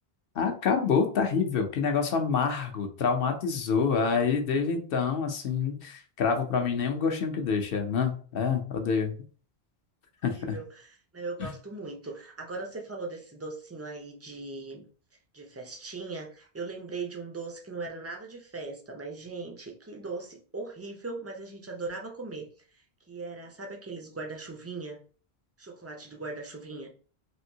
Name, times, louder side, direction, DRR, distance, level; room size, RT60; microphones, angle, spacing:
voice 1, 0.4-9.2 10.2-10.6 11.4-11.5, left 5 dB, 65° left, 5 dB, 0.7 m, -27 dB
voice 2, 10.3-14.9 15.3-25.0 25.6-26.9, right 3 dB, 25° right, 1 dB, 0.3 m, -39 dB
3.5 x 2.6 x 2.7 m, 0.41 s
omnidirectional pair, 1.1 m